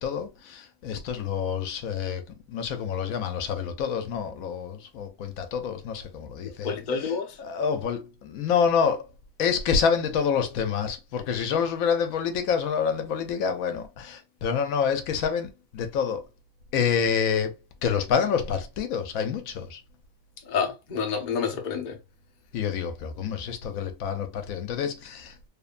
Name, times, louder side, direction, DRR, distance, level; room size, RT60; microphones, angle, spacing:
voice 1, 0.0-2.2 2.5-6.7 7.4-9.1 9.4-16.2 16.7-17.5 17.8-19.8 22.5-25.5, left 7 dB, 85° left, 1.0 m, -27 dB
voice 2, 6.4-7.4 20.4-22.0, left 6 dB, 50° left, 0.6 m, -29 dB
3.0 x 2.1 x 2.4 m
omnidirectional pair, 1.4 m